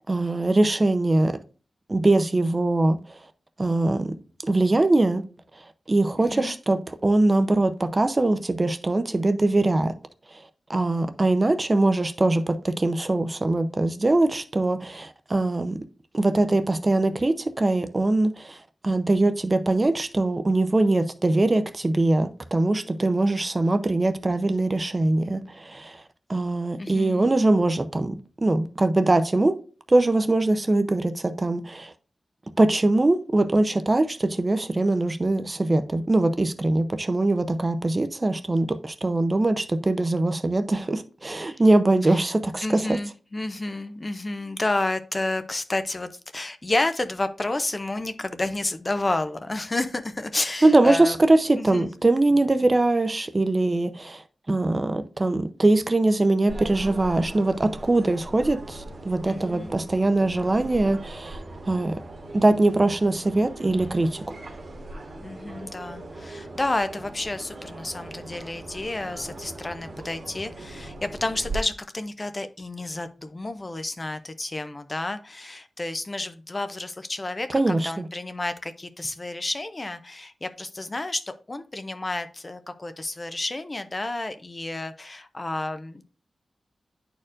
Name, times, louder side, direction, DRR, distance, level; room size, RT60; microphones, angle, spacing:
voice 1, 0.1-1.4 1.9-3.0 3.6-4.1 4.4-5.2 5.9-9.9 10.3-10.4 10.7-15.8 16.1-18.6 18.8-26.0 26.3-29.5 29.9-31.9 32.6-43.0 50.6-54.2 54.5-61.9 62.3-64.2 77.5-78.1, right 2 dB, 30° right, 0.5 m, -22 dB
voice 2, 6.2-6.5 26.8-27.2 41.5-41.6 42.0-42.2 42.6-51.1 51.6-51.9 59.2-59.7 65.2-86.0, left 2 dB, 30° left, 0.5 m, -30 dB
sound 1, 56.5-71.6, right 2 dB, 55° right, 1.3 m, -39 dB
10.0 x 4.4 x 2.5 m
wide cardioid pair, 100°, 0 cm